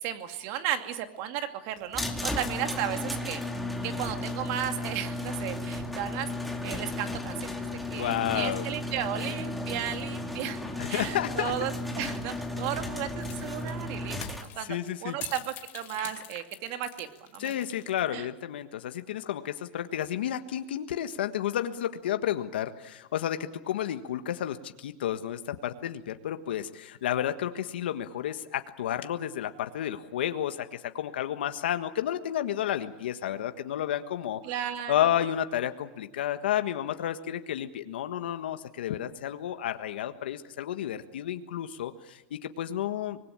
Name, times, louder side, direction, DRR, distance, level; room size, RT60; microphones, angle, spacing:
voice 1, 0.0-3.4 3.8-7.7 7.9-10.6 10.9-17.5 18.1-18.3 34.4-35.1, right 11 dB, 55° right, 7 dB, 2.5 m, -35 dB
sound 1, 1.9-14.4, left 2 dB, ahead, 2.5 m, -34 dB
voice 2, 7.9-8.7 10.8-11.5 14.0-14.2 14.7-15.2 17.4-34.4 34.9-43.2, left 11 dB, 90° left, 8 dB, 1.5 m, -31 dB
sound 2, 13.2-18.2, left 13 dB, 40° left, 2.4 m, -45 dB
25.5 x 20.5 x 8.8 m, 0.93 s
supercardioid pair, 140°, 5 cm